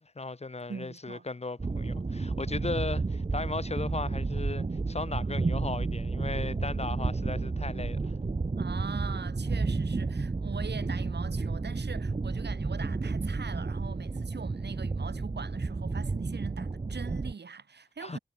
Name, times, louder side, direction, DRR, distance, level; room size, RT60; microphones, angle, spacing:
voice 1, 0.2-8.1 18.0-18.2, left 3 dB, 40° left, 2.0 m, -36 dB
voice 2, 0.7-1.2 8.5-18.2, right 5 dB, 85° right, 4.6 m, -42 dB
sound 1, 1.6-17.3, right 3 dB, 35° right, 1.1 m, -31 dB
wide cardioid pair, 90°, 17 cm